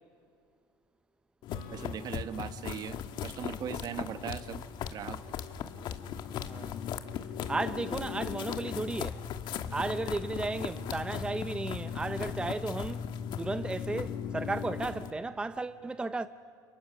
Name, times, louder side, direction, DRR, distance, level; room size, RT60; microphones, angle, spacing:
sound 1, 1.4-15.1, left 8 dB, 50° left, 1.6 m, -37 dB
Acoustic guitar / Strum, 1.5-5.1, left 3 dB, 75° left, 6.9 m, -54 dB
voice 1, 1.7-4.6 4.9-5.2, right 9 dB, 45° right, 1.1 m, -39 dB
voice 2, 6.5-6.8 7.5-9.2 9.7-13.1 13.4-16.3, right 2 dB, 10° right, 0.7 m, -34 dB
29.5 x 29.5 x 6.2 m
supercardioid pair, 110°, 10 cm